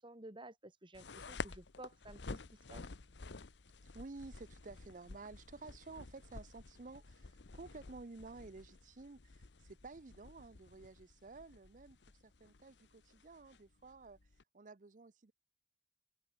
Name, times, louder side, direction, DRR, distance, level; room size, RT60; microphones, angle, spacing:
voice 1, 0.0-2.8, right 1 dB, 30° right, 2.4 m, -53 dB
sound 1, 0.9-14.4, left 3 dB, 80° left, 0.9 m, -51 dB
voice 2, 3.8-15.3, right 3 dB, 45° right, 0.7 m, -53 dB
open air
head